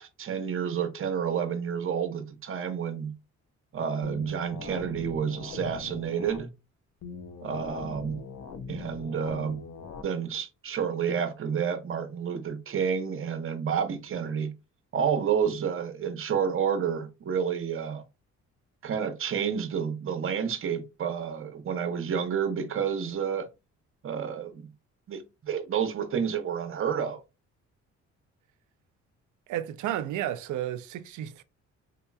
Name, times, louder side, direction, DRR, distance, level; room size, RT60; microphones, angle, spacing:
voice 1, 0.0-3.1 3.7-6.5 7.4-8.2 8.7-9.6 10.0-14.5 14.9-18.0 18.8-23.5 24.0-24.7 25.1-27.2, right 7 dB, 45° right, 0.8 m, -30 dB
sound 1, 4.0-6.4 7.0-10.0, left 5 dB, 60° left, 0.7 m, -41 dB
voice 2, 29.5-31.4, right 12 dB, 75° right, 0.5 m, -32 dB
3.9 x 2.9 x 2.3 m
cardioid pair, 90°, 30 cm